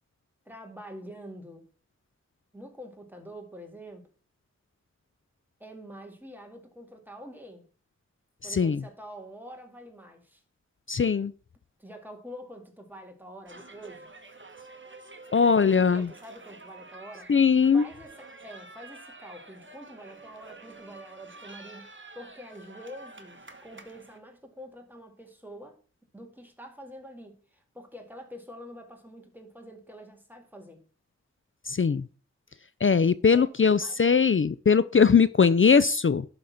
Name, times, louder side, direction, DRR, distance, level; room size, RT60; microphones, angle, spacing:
voice 1, 0.5-1.7 2.5-4.1 5.6-7.6 8.4-10.4 11.8-14.1 15.4-25.8 26.1-30.8 33.3-33.5 33.8-34.0, equal, 5° right, 2.1 m, -46 dB
voice 2, 8.5-8.8 10.9-11.3 15.3-16.1 17.3-17.8 31.7-32.0 32.8-36.3, left 6 dB, 45° left, 0.4 m, -21 dB
sound 1, 13.5-24.2, right 2 dB, 40° right, 1.2 m, -48 dB
11.5 x 4.1 x 5.7 m
wide cardioid pair, 50°, 29 cm